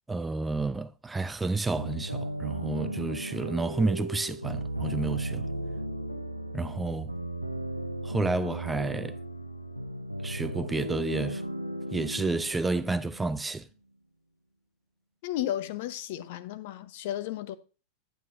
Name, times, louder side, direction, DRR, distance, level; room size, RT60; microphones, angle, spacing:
voice 1, 0.1-5.5 6.5-7.1 8.0-9.2 10.2-11.4 11.9-13.7, right 3 dB, 10° right, 0.4 m, -30 dB
sound 1, 1.8-13.5, right 1 dB, 90° right, 0.5 m, -36 dB
voice 2, 15.2-17.6, left 12 dB, 50° left, 0.7 m, -33 dB
9.2 x 9.1 x 2.6 m
figure-of-eight pair, 90°, 0 cm